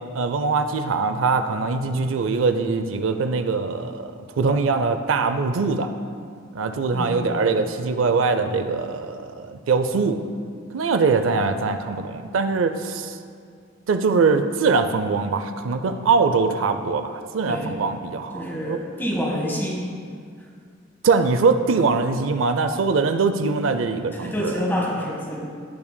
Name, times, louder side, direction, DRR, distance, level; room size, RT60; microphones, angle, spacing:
voice 1, 0.1-5.9 6.5-10.2 10.7-13.2 13.9-18.8 21.0-24.6, right 4 dB, 85° right, 8 dB, 0.5 m, -22 dB
voice 2, 6.9-7.4 17.4-17.7 18.3-19.8 24.1-25.5, equal, 10° left, -3 dB, 1.4 m, -27 dB
17.0 x 5.8 x 2.2 m, 2.1 s
head